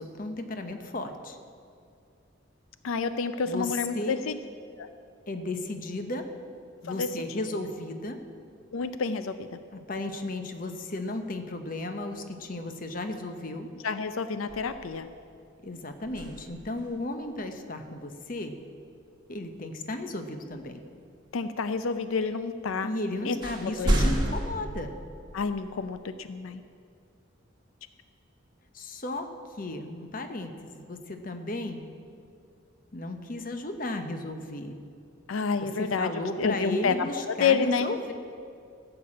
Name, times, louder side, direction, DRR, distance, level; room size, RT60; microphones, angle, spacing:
voice 1, 0.0-1.4 3.5-4.2 5.3-6.3 6.8-8.2 9.7-13.7 15.6-18.6 19.3-20.8 22.8-25.0 28.7-31.8 32.9-34.8 35.6-38.1, left 2 dB, 45° left, 7 dB, 0.9 m, -34 dB
voice 2, 2.8-4.4 4.8-4.9 6.8-7.1 8.7-9.5 13.8-15.1 21.3-22.9 23.3-23.4 23.8-24.0 25.3-26.6 35.3-36.1 36.4-37.9, left 5 dB, 85° left, 11 dB, 0.5 m, -29 dB
sound 1, 14.5-15.3 16.0-17.0 20.5-20.6 22.7-22.8 23.4-24.5, right 1 dB, 20° right, 1.5 m, -29 dB
14.0 x 6.9 x 8.6 m, 2.4 s
head